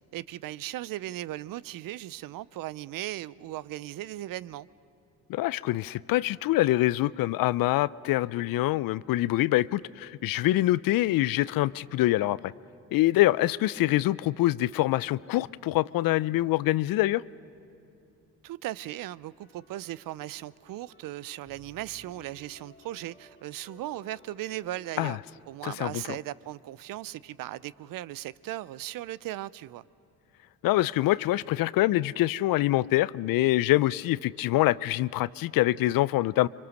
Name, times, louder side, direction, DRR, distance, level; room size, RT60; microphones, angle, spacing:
voice 1, 0.1-4.7 18.4-25.2 25.5-29.8, right 15 dB, 65° right, 0.6 m, -37 dB
voice 2, 5.3-12.5 12.9-17.2 25.0-25.2 25.6-26.0 30.6-36.5, left 16 dB, 65° left, 0.5 m, -25 dB
sound 1, 19.4-25.5, left 2 dB, 30° left, 1.7 m, -57 dB
25.5 x 24.0 x 6.4 m
supercardioid pair, 65°, 37 cm